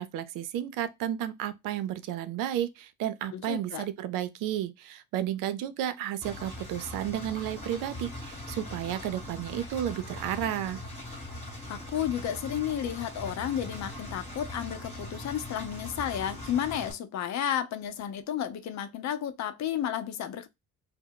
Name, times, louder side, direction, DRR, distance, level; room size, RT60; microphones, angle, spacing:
voice 1, 0.0-10.8, right 11 dB, 70° right, 0.5 m, -32 dB
voice 2, 3.3-3.9 11.7-20.5, left 10 dB, 55° left, 0.6 m, -32 dB
Engine, 6.2-16.9, left 1 dB, 20° left, 1.2 m, -41 dB
2.2 x 2.0 x 3.6 m
supercardioid pair, 65°, 34 cm